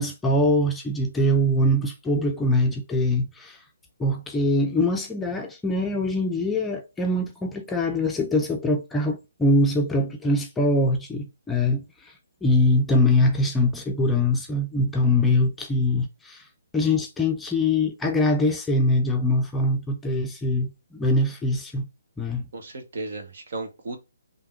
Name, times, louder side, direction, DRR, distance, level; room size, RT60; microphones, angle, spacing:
voice 1, 0.0-3.6 4.0-12.1 12.4-16.5 16.7-21.9 22.2-22.4, left 1 dB, 10° left, 0.5 m, -23 dB
voice 2, 22.5-24.0, right 3 dB, 60° right, 1.2 m, -35 dB
3.5 x 2.8 x 4.3 m
figure-of-eight pair, 140°, 0 cm